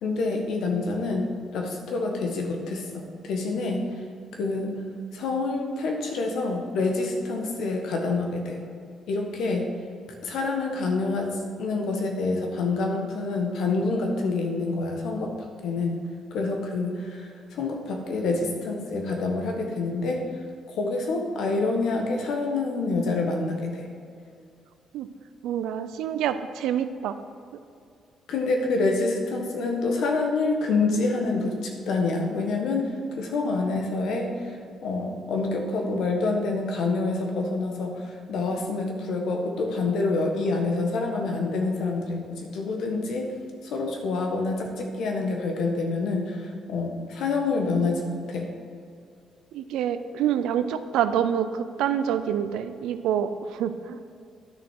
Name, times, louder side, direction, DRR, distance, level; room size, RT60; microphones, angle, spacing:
voice 1, 0.0-3.8 4.3-4.8 5.1-8.6 9.1-9.7 10.2-15.3 15.6-16.0 16.3-20.3 20.8-23.8 28.3-34.6 34.8-43.4 43.6-48.5, left 3 dB, 80° left, 2 dB, 1.5 m, -27 dB
voice 2, 25.4-27.2 49.5-54.0, right 9 dB, 90° right, 11 dB, 0.5 m, -27 dB
10.5 x 6.3 x 4.7 m, 2.4 s
cardioid pair, 90°, 0 cm